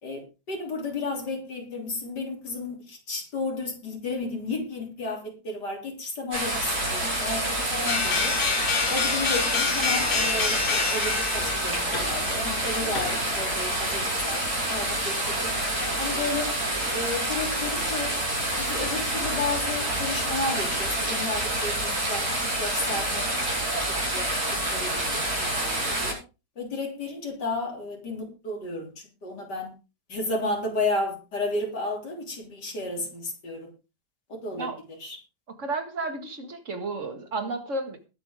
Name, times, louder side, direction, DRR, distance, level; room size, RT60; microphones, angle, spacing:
voice 1, 0.0-8.4 8.9-15.5 16.0-16.6 16.9-18.2 18.5-23.3 23.6-24.3 24.7-26.2 26.6-29.7 30.1-33.7 34.3-35.2, left 2 dB, 90° left, 1 dB, 3.9 m, -33 dB
sound 1, 6.3-26.1, right 1 dB, 65° right, 6.3 m, -28 dB
sound 2, 7.9-13.7, left 5 dB, 60° left, 2.4 m, -28 dB
voice 2, 35.6-38.1, right 3 dB, 45° right, 7 dB, 2.3 m, -32 dB
20.5 x 8.1 x 3.7 m, 0.31 s
omnidirectional pair, 1.8 m